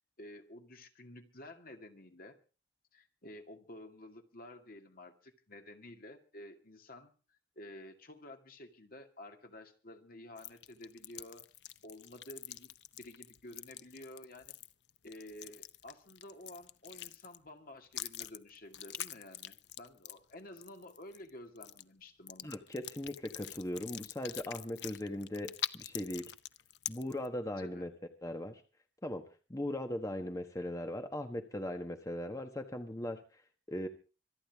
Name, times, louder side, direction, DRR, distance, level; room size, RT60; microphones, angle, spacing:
voice 1, 0.2-2.4 2.9-11.5 11.8-14.5 15.0-22.5 27.6-27.9, left 1 dB, 55° left, 5 dB, 2.3 m, -51 dB
sound 1, 10.4-17.5 17.9-21.3 21.5-21.8 22.3-27.3, left 12 dB, 80° left, 0.8 m, -44 dB
voice 2, 22.4-26.3 26.9-27.9 28.2-28.6 29.0-29.2 29.5-33.4 33.7-33.9, left 1 dB, 20° left, 6 dB, 1.4 m, -39 dB
26.5 x 10.0 x 3.6 m, 0.35 s
head